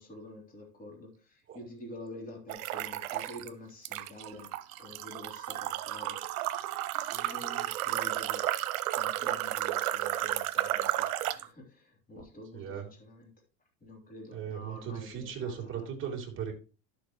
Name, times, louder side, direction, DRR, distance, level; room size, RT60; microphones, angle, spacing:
voice 1, 0.0-4.5 4.8-6.2 7.1-8.5 8.9-13.3 13.8-15.9, left 1 dB, 20° left, 0 dB, 3.3 m, -48 dB
sound 1, 2.5-3.5 3.8-11.5, right 14 dB, 90° right, 0.9 m, -33 dB
voice 2, 12.5-12.9 14.3-16.5, right 8 dB, 30° right, 1 dB, 2.7 m, -37 dB
11.5 x 6.9 x 3.0 m, 0.34 s
supercardioid pair, 135°, 41 cm